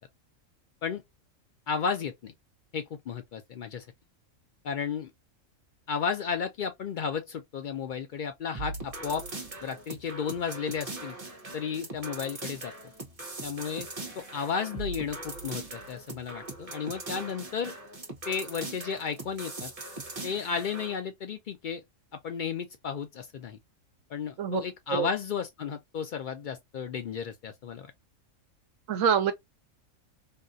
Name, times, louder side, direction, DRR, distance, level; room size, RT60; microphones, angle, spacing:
voice 1, 1.7-2.3 2.7-3.9 4.6-5.1 5.9-9.2 9.6-11.2 11.5-12.7 13.4-13.9 14.2-17.7 18.3-19.7 20.2-21.8 22.2-23.6 24.1-27.9, left 6 dB, 80° left, 0.4 m, -33 dB
sound 1, 8.5-20.9, right 2 dB, 30° right, 1.0 m, -40 dB
voice 2, 28.9-29.3, right 7 dB, 70° right, 1.0 m, -25 dB
3.6 x 2.4 x 2.6 m
omnidirectional pair, 1.4 m